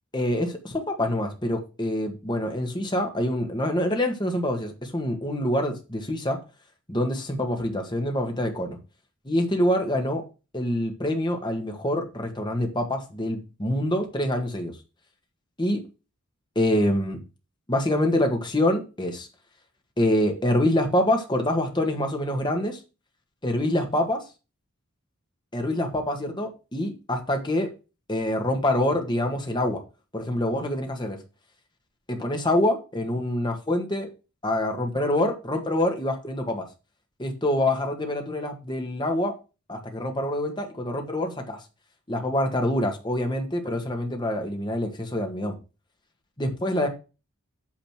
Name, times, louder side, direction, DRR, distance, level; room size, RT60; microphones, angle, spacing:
voice 1, 0.1-6.4 6.9-8.8 9.2-10.2 10.5-14.7 15.6-15.8 16.5-17.2 17.7-19.3 20.0-22.8 23.4-24.2 25.5-27.7 28.1-29.8 30.1-31.2 32.1-34.1 34.4-36.7 37.2-39.3 39.7-41.6 42.1-45.6 46.4-46.9, left 1 dB, 20° left, 4 dB, 1.6 m, -26 dB
8.8 x 4.2 x 6.0 m, 0.30 s
head